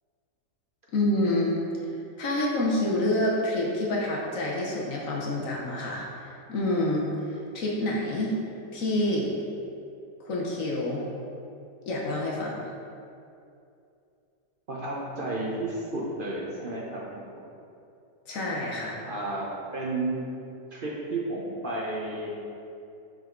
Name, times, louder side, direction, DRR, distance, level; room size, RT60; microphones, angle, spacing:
voice 1, 0.9-1.6 2.2-6.1 6.5-8.3 8.7-9.3 10.2-11.1 11.9-12.7 18.3-19.0, left 1 dB, 55° left, -3 dB, 1.1 m, -27 dB
voice 2, 14.7-17.3 19.0-20.3 20.7-22.3, right 2 dB, 45° right, -4 dB, 0.7 m, -32 dB
5.5 x 5.2 x 3.8 m, 2.6 s
omnidirectional pair, 1.8 m